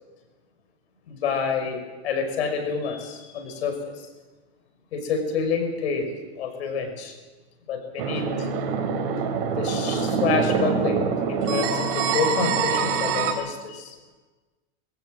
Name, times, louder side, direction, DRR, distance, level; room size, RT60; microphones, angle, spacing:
voice 1, 1.1-3.8 4.9-7.1 7.7-8.5 9.6-11.0 11.3-13.9, left 5 dB, 85° left, 5 dB, 5.9 m, -28 dB
sound 1, 8.0-13.3, right 5 dB, 60° right, 3.7 m, -25 dB
23.0 x 15.5 x 7.8 m, 1.2 s
supercardioid pair, 135°, 31 cm